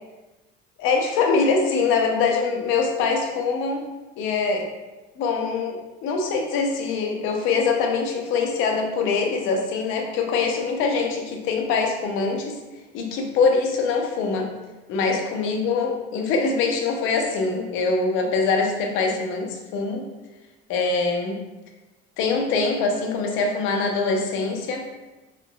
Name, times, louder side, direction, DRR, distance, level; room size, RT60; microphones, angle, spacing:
voice 1, 0.8-3.8 4.2-4.7 5.2-12.5 12.9-14.5 14.9-20.1 20.7-21.4 22.2-24.8, left 4 dB, 70° left, 2 dB, 0.6 m, -23 dB
3.5 x 2.9 x 2.2 m, 1.1 s
cardioid pair, 120°, 21 cm